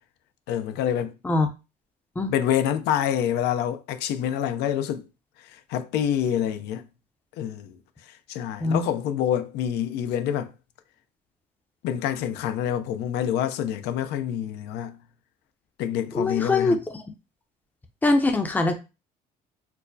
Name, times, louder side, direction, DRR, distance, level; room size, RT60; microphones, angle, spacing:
voice 1, 0.5-1.1 2.3-5.1 5.5-6.8 7.4-7.8 8.1-10.5 11.8-15.0 15.8-16.8, left 10 dB, 85° left, 0.5 m, -27 dB
voice 2, 16.1-16.8 18.0-18.7, left 2 dB, 10° left, 0.5 m, -22 dB
4.4 x 2.0 x 2.6 m
cardioid pair, 110°, 17 cm